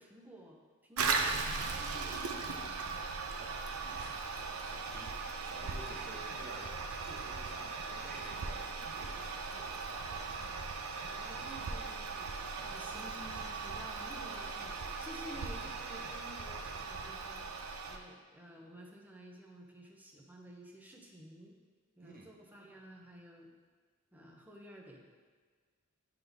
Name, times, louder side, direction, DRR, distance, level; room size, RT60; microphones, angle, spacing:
voice 1, 0.0-3.0 10.4-10.6 11.0-12.3 12.6-21.6 22.0-23.5 24.1-25.0, equal, 10° right, 0 dB, 0.7 m, -52 dB
Toilet flush, 1.0-18.0, right 4 dB, 80° right, 0.5 m, -38 dB
voice 2, 3.4-10.3 11.3-11.5 12.6-12.7 22.0-22.3, right 2 dB, 40° right, -1 dB, 1.0 m, -52 dB
9.3 x 3.9 x 3.4 m, 1.5 s
head